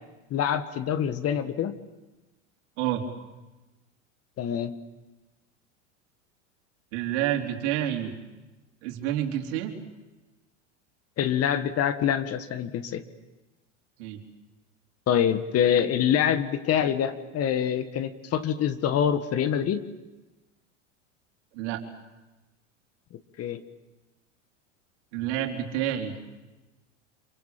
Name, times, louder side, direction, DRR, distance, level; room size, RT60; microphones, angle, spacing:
voice 1, 0.3-1.8 4.4-4.7 11.2-13.0 15.1-19.8 23.4-23.6, left 9 dB, 40° left, 11 dB, 1.7 m, -25 dB
voice 2, 6.9-8.1 8.8-9.7 14.0-14.2 21.5-21.8 25.1-26.1, right 11 dB, 65° right, 3 dB, 4.0 m, -28 dB
27.0 x 24.5 x 7.7 m, 1.1 s
hypercardioid pair, 95°, 37 cm